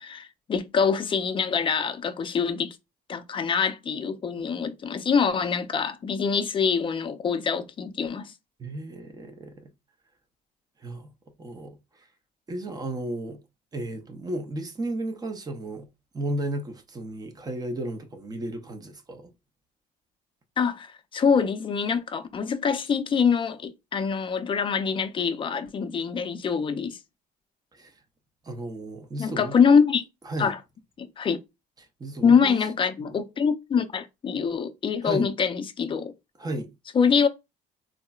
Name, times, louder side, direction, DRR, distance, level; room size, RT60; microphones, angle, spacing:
voice 1, 0.0-2.8 3.1-8.3 20.6-27.0 29.2-30.0 30.4-30.6 31.0-31.4 32.2-36.1 36.9-37.3, left 6 dB, 30° left, 0.4 m, -24 dB
voice 2, 8.6-9.7 10.8-11.1 11.4-12.1 12.5-13.4 13.7-15.9 16.1-19.3 27.7-27.9 28.4-29.5 30.2-30.5 31.8-32.7 33.0-33.2 35.0-35.3 36.4-36.7, right 1 dB, 20° right, 0.6 m, -34 dB
3.7 x 2.0 x 2.3 m
cardioid pair, 110°, 17 cm